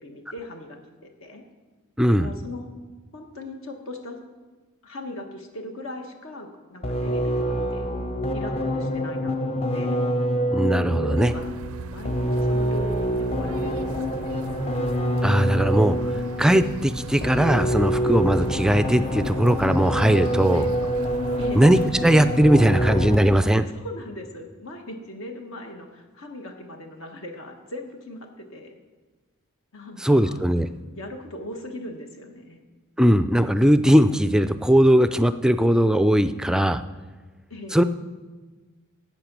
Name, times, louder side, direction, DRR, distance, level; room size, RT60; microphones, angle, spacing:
voice 1, 0.0-1.4 2.2-2.7 3.1-4.2 4.8-7.9 8.3-10.0 10.9-14.5 20.5-20.7 21.4-21.7 23.7-28.8 29.7-30.4 30.9-32.6 37.5-37.8, left 1 dB, 65° left, 3 dB, 1.3 m, -39 dB
voice 2, 2.0-2.3 10.5-11.3 15.2-16.0 16.4-20.6 21.5-23.6 30.0-30.7 33.0-36.8 37.7-37.8, equal, 5° right, 11 dB, 0.3 m, -19 dB
sound 1, 6.8-23.5, equal, 30° left, 0.7 m, -26 dB
sound 2, 11.2-22.4, right 5 dB, 75° right, 0.4 m, -40 dB
12.0 x 8.1 x 6.0 m, 1.3 s
head